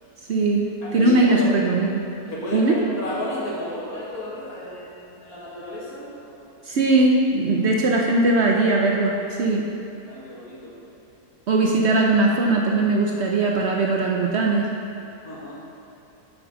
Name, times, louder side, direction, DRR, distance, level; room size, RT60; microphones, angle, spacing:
voice 1, 0.3-0.7 0.9-1.9 2.5-2.7 6.6-9.7 11.5-14.7, right 2 dB, 55° right, -1 dB, 0.8 m, -20 dB
voice 2, 0.8-1.7 2.3-6.5 10.1-10.7 15.2-15.5, left 1 dB, 70° left, -6 dB, 2.4 m, -32 dB
8.3 x 5.4 x 6.0 m, 2.7 s
omnidirectional pair, 1.6 m